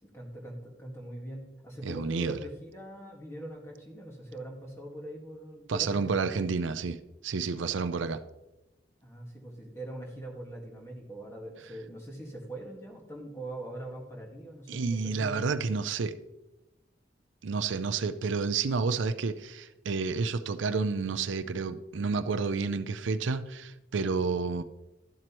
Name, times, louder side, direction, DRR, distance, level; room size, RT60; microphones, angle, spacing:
voice 1, 0.0-6.5 9.0-15.4, right 1 dB, 15° left, -1 dB, 1.7 m, -42 dB
voice 2, 1.8-2.4 5.7-7.0 7.2-8.2 14.7-16.1 17.4-24.6, right 4 dB, 90° right, 10 dB, 0.5 m, -30 dB
12.5 x 7.6 x 3.0 m, 1.0 s
head